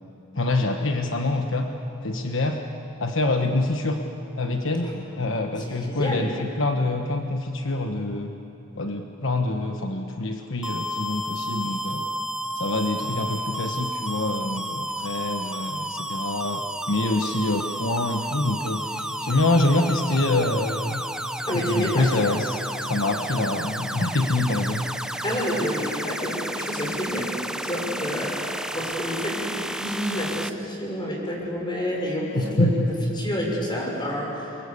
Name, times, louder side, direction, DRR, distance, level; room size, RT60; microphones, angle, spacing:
voice 1, 0.4-1.7 2.0-2.6 3.0-4.0 4.4-4.9 5.2-8.3 8.7-12.0 12.6-21.0 21.7-24.8 32.3-32.7, left 2 dB, 70° left, 4 dB, 1.3 m, -25 dB
voice 2, 5.6-6.2 21.5-22.1 25.2-27.3 27.6-32.8 33.2-34.5, equal, 25° left, -1 dB, 6.3 m, -29 dB
sound 1, 10.6-30.5, right 1 dB, 5° right, 0.7 m, -32 dB
28.5 x 24.0 x 8.4 m, 2.9 s
head